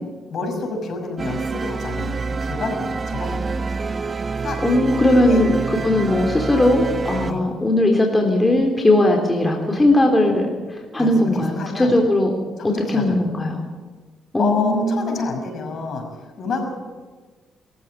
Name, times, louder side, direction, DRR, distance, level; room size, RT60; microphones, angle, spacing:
voice 1, 0.3-3.8 4.4-4.6 5.3-5.4 5.8-6.0 7.2-7.4 11.0-11.9 12.6-13.2 14.4-16.7, left 3 dB, 55° left, 4 dB, 6.2 m, -29 dB
sound 1, 1.2-7.3, right 4 dB, 35° right, 1.1 m, -26 dB
voice 2, 4.6-5.5 5.8-12.3 12.9-13.6 14.3-15.2, left 1 dB, 15° left, 1 dB, 3.5 m, -18 dB
22.5 x 14.5 x 9.2 m, 1.4 s
cardioid pair, 90°, 0 cm